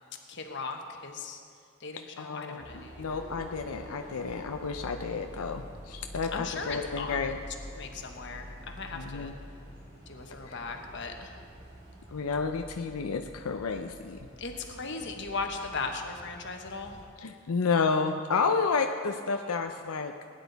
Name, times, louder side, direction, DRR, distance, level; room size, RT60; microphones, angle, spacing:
voice 1, 0.3-1.4 1.8-3.2 6.3-7.3 7.7-9.3 10.1-11.3 14.4-16.9, left 4 dB, 55° left, 3 dB, 1.2 m, -38 dB
voice 2, 2.2-7.4 8.9-9.3 10.5-10.6 12.1-14.2 17.2-20.3, left 5 dB, 90° left, 5 dB, 0.6 m, -31 dB
sound 1, 2.6-17.1, equal, 35° right, 2.7 m, -47 dB
19.0 x 10.0 x 4.1 m, 2.2 s
head